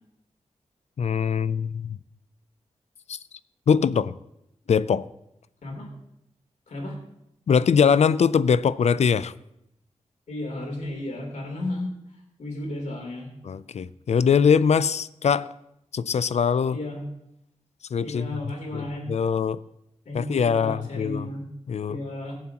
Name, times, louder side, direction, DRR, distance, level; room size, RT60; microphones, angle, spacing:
voice 1, 1.0-2.0 3.1-3.2 3.7-4.1 4.7-5.1 7.5-9.3 13.4-15.5 15.9-16.8 17.9-19.6 20.1-21.3 21.7-22.0, left 6 dB, 65° left, 16 dB, 0.4 m, -22 dB
voice 2, 5.6-5.9 6.7-7.0 10.3-11.9 12.4-13.3 16.7-17.0 18.0-19.1 20.0-21.5 21.9-22.3, left 1 dB, 90° left, -1 dB, 3.3 m, -33 dB
21.0 x 7.4 x 3.0 m, 0.82 s
wide cardioid pair, 100°, 12 cm